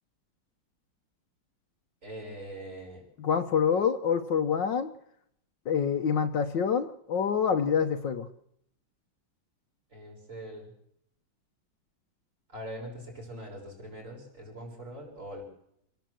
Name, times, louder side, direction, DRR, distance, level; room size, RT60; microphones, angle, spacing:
voice 1, 2.0-3.0 9.9-10.7 12.5-15.4, right 1 dB, 40° right, 1 dB, 6.1 m, -42 dB
voice 2, 3.2-4.9 5.7-8.3, left 7 dB, 70° left, 6 dB, 1.7 m, -26 dB
27.5 x 17.5 x 7.7 m, 0.75 s
omnidirectional pair, 2.1 m